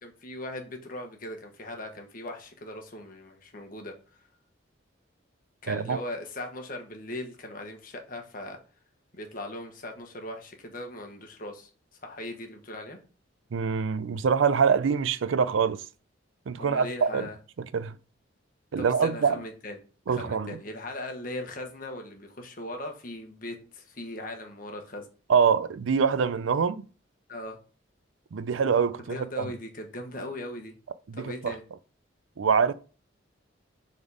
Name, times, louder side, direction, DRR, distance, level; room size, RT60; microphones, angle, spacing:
voice 1, 0.0-3.9 5.6-8.6 9.1-11.7 12.0-13.0 16.6-17.4 18.8-19.8 20.1-25.1 27.3-27.6 29.1-30.7 31.1-31.6, left 1 dB, 45° left, 1.3 m, -39 dB
voice 2, 5.7-6.0 13.5-15.8 16.5-17.3 17.7-18.0 18.7-19.4 20.1-20.6 25.3-26.8 28.3-29.5 31.1-31.6 32.4-32.7, right 6 dB, 90° right, 0.4 m, -25 dB
5.2 x 4.1 x 4.8 m
head